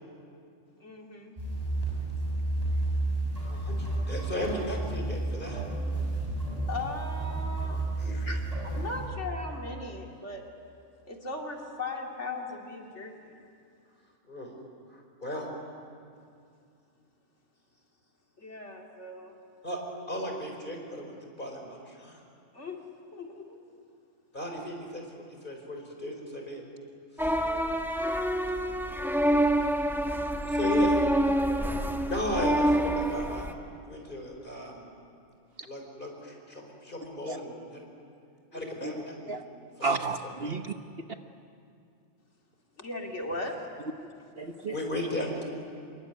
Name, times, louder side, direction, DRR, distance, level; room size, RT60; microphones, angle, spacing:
voice 1, 0.8-1.4 3.4-3.6 6.7-7.8 8.3-8.4 8.8-10.4 11.0-13.1 18.4-19.3 22.5-22.8 23.1-23.6 42.8-43.6 44.7-44.8, left 2 dB, 65° left, 1 dB, 2.8 m, -38 dB
sound 1, 1.4-9.1, right 2 dB, 30° right, 7.6 m, -31 dB
voice 2, 3.5-5.6 8.0-8.4 14.3-14.5 15.2-15.5 19.6-19.8 20.1-22.2 24.3-26.6 27.2-27.3 30.5-31.0 32.1-33.4 33.8-34.9 35.6-37.9 38.5-39.4 39.8-40.0 44.7-45.4, left 1 dB, 40° left, 2 dB, 4.9 m, -35 dB
sound 2, 27.2-33.5, right 1 dB, ahead, 1.3 m, -26 dB
voice 3, 38.5-38.9 39.3-39.4 39.8-40.7 44.4-44.8, right 4 dB, 50° right, 7 dB, 1.3 m, -32 dB
26.5 x 23.0 x 9.6 m, 2.4 s
omnidirectional pair, 1.3 m